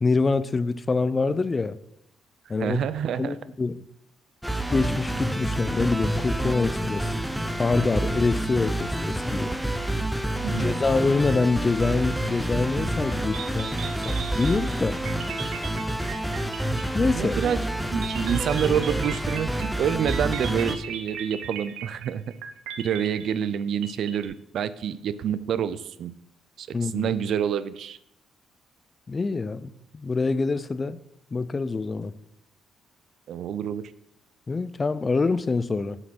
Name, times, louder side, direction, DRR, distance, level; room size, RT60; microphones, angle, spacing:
voice 1, 0.0-1.8 2.5-2.8 3.2-3.8 4.7-7.1 7.6-9.5 10.6-15.0 16.9-17.4 26.7-27.1 29.1-31.0 31.3-32.1 34.5-36.0, left 3 dB, 30° left, 15 dB, 0.6 m, -25 dB
voice 2, 2.6-3.4 10.4-10.7 17.1-22.2 22.8-26.2 26.6-28.0 33.3-33.8, right 8 dB, 70° right, 15 dB, 0.5 m, -27 dB
sound 1, 4.4-20.8, right 1 dB, ahead, 0.8 m, -28 dB
sound 2, 13.3-17.3 18.0-24.3, right 8 dB, 90° right, 0.9 m, -38 dB
8.0 x 6.0 x 6.1 m, 0.78 s
cardioid pair, 85°, 0 cm